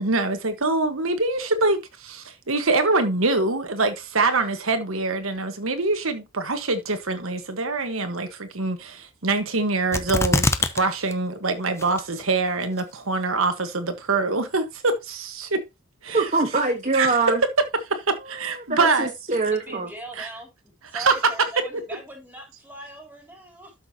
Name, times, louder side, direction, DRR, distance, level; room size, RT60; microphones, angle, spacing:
voice 1, 0.0-15.6 16.0-16.3 16.9-17.1 17.9-19.1 20.2-20.3 20.9-21.1, right 3 dB, 75° right, 1.4 m, -24 dB
sound 1, 9.9-10.8 11.1-11.2 11.8-12.2 12.8-12.9, left 2 dB, 15° left, 0.7 m, -22 dB
voice 2, 16.1-17.4 18.5-19.9, right 3 dB, 35° right, 1.3 m, -23 dB
voice 3, 19.5-20.5 20.8-23.7, right 1 dB, 10° right, 3.5 m, -41 dB
12.5 x 6.3 x 2.9 m
head